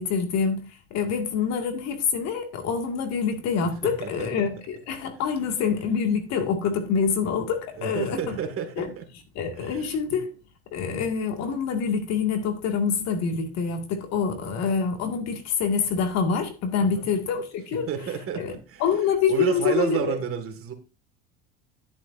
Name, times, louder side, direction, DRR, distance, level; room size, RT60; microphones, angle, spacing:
voice 1, 0.0-8.4 8.8-8.9 9.4-10.3 10.7-17.9 18.4-18.5 18.8-20.1, left 6 dB, 60° left, 2.3 m, -26 dB
voice 2, 3.8-4.5 7.8-9.1 9.6-10.2 14.4-14.8 16.8-17.1 17.7-18.8 19.3-20.7, right 7 dB, 45° right, 2.1 m, -31 dB
10.5 x 10.0 x 2.7 m
supercardioid pair, 90°, 30 cm